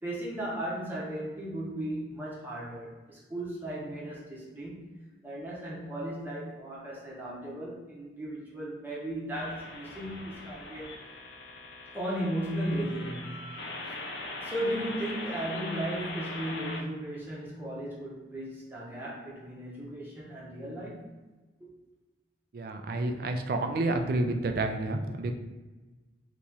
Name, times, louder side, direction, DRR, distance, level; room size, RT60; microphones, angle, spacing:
voice 1, 0.0-5.0 5.2-10.9 11.9-13.9 14.4-21.1 21.6-21.7, right 1 dB, 10° right, -6 dB, 0.8 m, -36 dB
sound 1, 9.3-16.8, left 2 dB, 75° left, 0.5 m, -41 dB
voice 2, 22.5-25.3, right 2 dB, 50° right, 6 dB, 0.3 m, -29 dB
2.9 x 2.7 x 3.5 m, 1.2 s
head